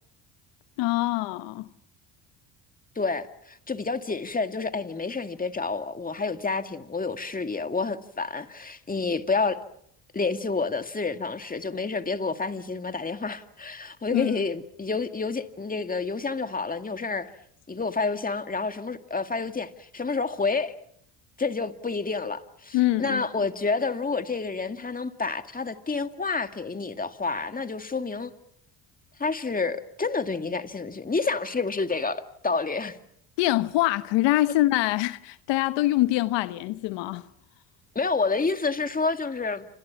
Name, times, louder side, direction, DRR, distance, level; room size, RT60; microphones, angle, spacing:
voice 1, 0.8-1.7 14.1-14.4 22.7-23.2 33.4-37.2, left 17 dB, 75° left, 1.1 m, -24 dB
voice 2, 3.0-9.6 10.1-17.3 17.7-20.7 21.4-28.3 29.2-33.0 38.0-39.6, left 4 dB, 20° left, 2.1 m, -29 dB
29.0 x 27.0 x 5.9 m
supercardioid pair, 75°, 43 cm